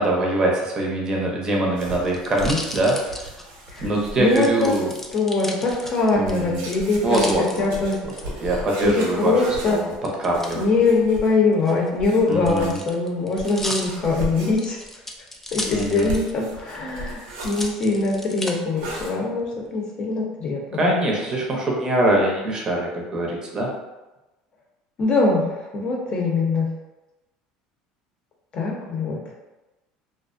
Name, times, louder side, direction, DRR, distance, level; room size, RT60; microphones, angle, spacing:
voice 1, 0.0-3.0 3.8-4.9 6.1-6.6 7.0-7.7 8.4-9.9 10.2-10.6 12.3-12.8 15.7-16.1 20.7-23.7, right 1 dB, 30° right, -1 dB, 0.6 m, -23 dB
sound 1, 1.3-3.8 4.4-6.3 6.7-8.2 10.0-10.6 11.5-16.4 16.7-16.8 17.4-18.5 19.2-19.7, left 1 dB, 10° left, 0.3 m, -35 dB
sound 2, 1.7-5.1 5.7-11.5 12.0-12.8 13.4-14.8 15.5-17.7 18.8-19.1, equal, 85° right, 0.6 m, -36 dB
voice 2, 3.7-4.7 5.1-7.3 7.6-8.0 8.8-9.9 10.5-14.8 15.5-21.0 25.0-26.7 28.5-29.2, left 3 dB, 40° left, -2 dB, 0.7 m, -22 dB
2.3 x 2.1 x 2.5 m, 1.1 s
supercardioid pair, 110°, 2 cm